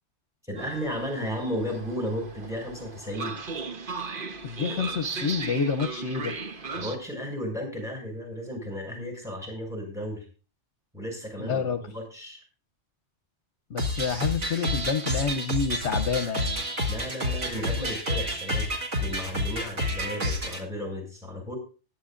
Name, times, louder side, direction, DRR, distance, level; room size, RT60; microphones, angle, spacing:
voice 1, 0.5-3.4 6.7-10.2 10.9-11.6 11.9-12.4 16.9-21.6, equal, ahead, 0 dB, 6.7 m, -34 dB
Train, 0.6-7.0, right 4 dB, 50° right, 1.2 m, -36 dB
voice 2, 4.4-6.4 11.4-11.8 13.7-16.6, left 6 dB, 70° left, 9 dB, 1.1 m, -28 dB
sound 1, 13.8-20.6, left 1 dB, 80° right, 2.3 m, -29 dB
20.5 x 11.0 x 2.5 m, 0.35 s
omnidirectional pair, 1.2 m